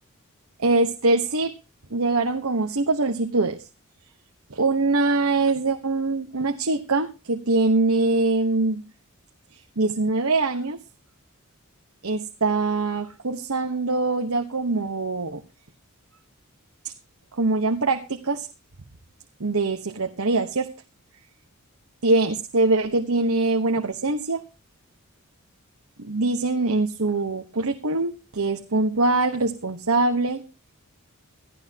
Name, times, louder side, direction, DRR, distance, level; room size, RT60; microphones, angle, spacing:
voice 1, 0.6-1.6 1.9-3.6 4.5-8.8 9.8-10.8 12.0-15.4 17.4-18.5 19.4-20.7 22.0-24.4 26.0-30.4, right 3 dB, 70° right, 5 dB, 1.2 m, -23 dB
17.0 x 13.0 x 2.9 m, 0.30 s
head